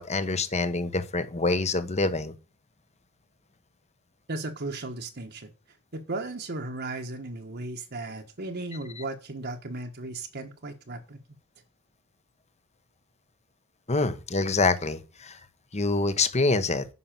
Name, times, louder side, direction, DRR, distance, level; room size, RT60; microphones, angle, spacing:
voice 1, 0.0-2.3 13.9-15.4 15.7-16.9, left 3 dB, 30° left, 1.2 m, -26 dB
voice 2, 4.3-5.5 5.9-11.2, right 2 dB, 50° right, 1.3 m, -36 dB
9.8 x 5.9 x 7.5 m
head